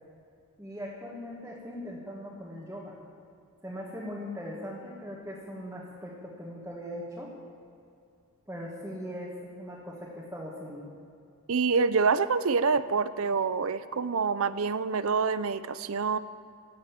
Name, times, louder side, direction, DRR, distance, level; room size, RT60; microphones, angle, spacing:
voice 1, 0.6-3.0 3.6-7.3 8.5-10.8, equal, 10° right, -6 dB, 1.9 m, -40 dB
voice 2, 11.5-16.2, right 5 dB, 70° right, 14 dB, 0.6 m, -26 dB
15.5 x 7.0 x 9.0 m, 2.6 s
head